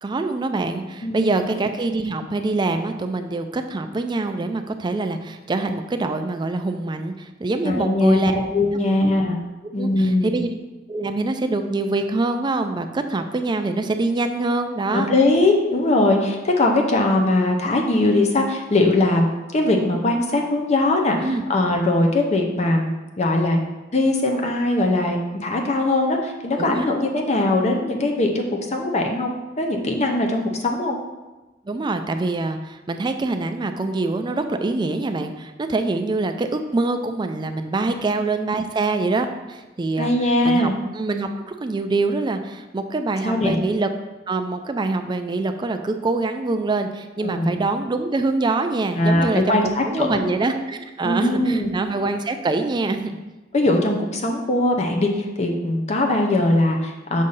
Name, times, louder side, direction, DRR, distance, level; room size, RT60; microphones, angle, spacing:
voice 1, 0.0-8.3 9.0-9.1 9.8-10.5 10.9-15.1 21.2-21.4 26.6-26.9 31.7-40.1 40.4-43.9 44.3-53.2, right 3 dB, 25° right, 7 dB, 0.3 m, -24 dB
voice 2, 7.6-9.4 9.7-10.3 14.9-21.2 21.5-22.9 23.2-23.6 23.9-31.0 37.9-38.0 40.0-40.7 43.2-43.6 47.2-47.6 49.0-50.3 51.0-51.7 53.5-55.1 55.4-57.2, left 2 dB, 35° left, 2 dB, 0.6 m, -20 dB
6.4 x 2.7 x 5.4 m, 1.1 s
head